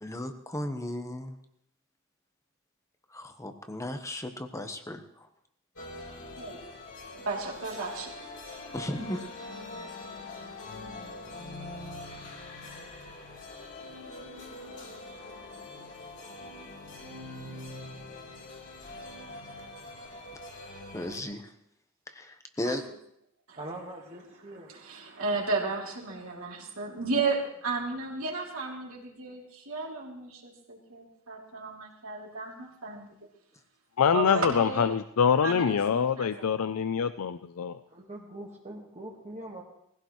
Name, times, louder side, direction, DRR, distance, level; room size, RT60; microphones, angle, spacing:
voice 1, 0.0-1.3 3.1-5.3 8.7-9.2 20.9-21.5 22.1-22.8, left 1 dB, 15° left, 7 dB, 1.1 m, -35 dB
sound 1, 5.8-21.2, left 2 dB, 60° left, 3.5 m, -43 dB
voice 2, 7.1-8.3 22.6-22.7 23.5-23.6 24.7-33.1 34.1-34.9 35.4-36.5, right 3 dB, 70° right, -2 dB, 3.0 m, -34 dB
voice 3, 23.6-24.7 37.8-39.6, right 1 dB, 30° right, -2 dB, 1.6 m, -42 dB
voice 4, 34.0-37.8, left 7 dB, 80° left, 12 dB, 0.4 m, -25 dB
20.0 x 16.0 x 3.1 m, 0.74 s
head